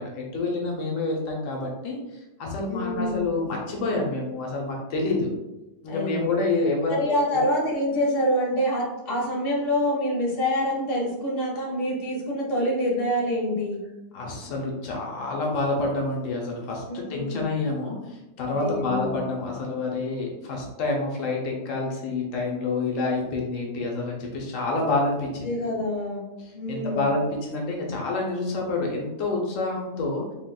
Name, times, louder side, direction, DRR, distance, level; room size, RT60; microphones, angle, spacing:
voice 1, 0.0-5.3 5.8-6.9 7.3-7.4 14.1-25.5 26.4-30.3, left 3 dB, 85° left, -1 dB, 1.0 m, -28 dB
voice 2, 2.7-3.3 5.9-6.4 6.9-13.8 16.9-17.5 18.5-19.2 25.4-26.3 26.5-27.1, equal, 50° left, -3 dB, 1.0 m, -26 dB
3.5 x 2.7 x 2.3 m, 0.98 s
omnidirectional pair, 1.3 m